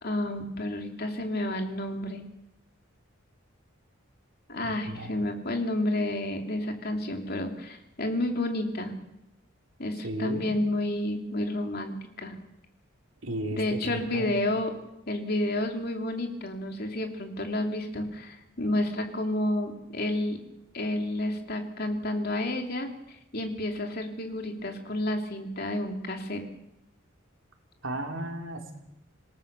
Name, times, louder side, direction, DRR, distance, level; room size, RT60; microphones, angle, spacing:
voice 1, 0.0-2.2 4.5-8.9 9.8-12.3 13.5-14.7 15.1-20.4 20.7-22.9 23.3-26.4, left 1 dB, 50° left, 4 dB, 3.0 m, -30 dB
voice 2, 4.5-5.1 10.0-10.5 13.2-14.3 27.8-28.7, right 1 dB, 65° right, 3 dB, 3.5 m, -35 dB
26.5 x 18.0 x 7.0 m, 0.86 s
head